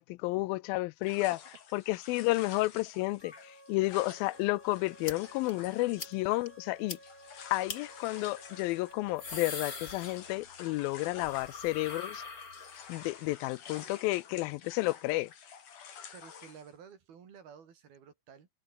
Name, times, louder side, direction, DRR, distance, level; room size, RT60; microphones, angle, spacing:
voice 1, 0.0-1.4 1.7-7.0 7.5-12.2 12.9-15.3, left 20 dB, 80° left, 2.4 m, -31 dB
sound 1, 1.0-12.1 12.4-16.7, left 7 dB, 60° left, 4.4 m, -50 dB
sound 2, 3.2-10.4, right 1 dB, 5° right, 5.0 m, -55 dB
sound 3, 5.0-5.1 5.5-5.6 6.0-6.1 6.5-6.6 6.9-7.0 7.7-7.8 8.9-10.6 10.9-13.0, left 4 dB, 25° left, 2.7 m, -42 dB
voice 2, 16.1-18.5, right 7 dB, 85° right, 5.5 m, -52 dB
omnidirectional pair, 4.2 m